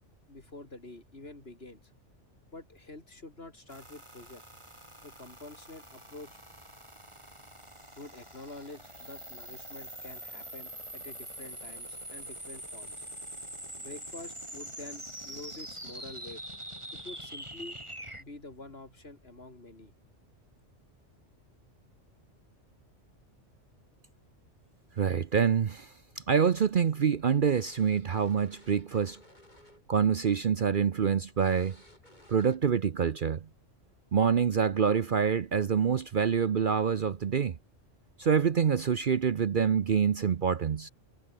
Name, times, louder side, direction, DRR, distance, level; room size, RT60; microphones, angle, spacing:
voice 1, 0.3-1.9 2.5-4.4 5.0-6.4 7.9-13.1 13.8-16.4 16.9-17.8 18.2-19.9, left 2 dB, 55° left, 4.0 m, -47 dB
sound 1, 3.7-18.2, right 1 dB, 25° right, 5.9 m, -44 dB
voice 2, 25.0-29.2 29.9-31.8 32.3-33.4 34.1-37.6 38.2-40.9, right 7 dB, 50° right, 0.8 m, -26 dB
sound 2, 26.9-30.0 30.2-30.5 30.9-31.0 31.4-32.9, left 1 dB, 35° left, 8.3 m, -58 dB
omnidirectional pair, 1.3 m